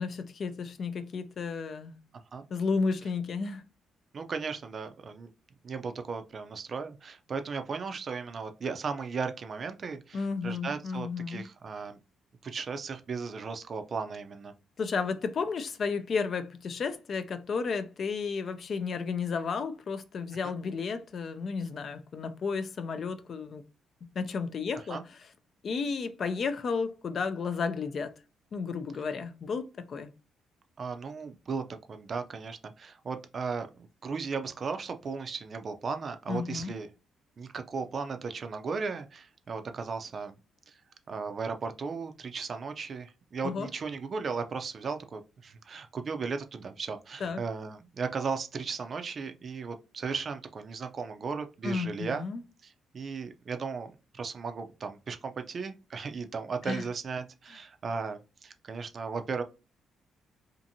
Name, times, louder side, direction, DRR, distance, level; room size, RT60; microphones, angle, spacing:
voice 1, 0.0-1.9 2.5-3.6 10.1-11.4 14.8-23.6 24.2-25.0 25.6-28.1 28.5-30.1 36.3-36.8 43.4-43.7 47.2-47.4 51.6-52.4 56.6-56.8, left 5 dB, 50° left, 0.3 m, -32 dB
voice 2, 4.1-5.3 5.6-12.0 12.4-14.5 20.4-20.5 24.9-25.0 30.8-36.9 37.4-40.4 40.7-40.8 41.1-52.2 52.6-59.4, right 5 dB, 45° right, 0.4 m, -36 dB
2.7 x 2.5 x 2.6 m
cardioid pair, 90°, 0 cm